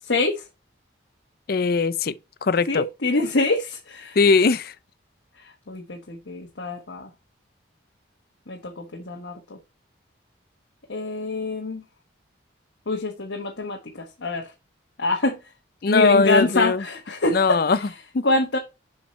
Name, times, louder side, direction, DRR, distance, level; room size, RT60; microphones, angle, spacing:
voice 1, 0.0-0.5 2.7-4.2 5.3-7.1 8.5-9.6 10.9-11.8 12.9-14.5 15.0-15.5 15.9-18.6, left 2 dB, 75° left, 1.2 m, -26 dB
voice 2, 1.5-2.1 2.4-2.8 4.2-4.7 15.8-16.8 17.3-17.8, left 4 dB, 50° left, 0.4 m, -19 dB
7.2 x 4.5 x 4.3 m
head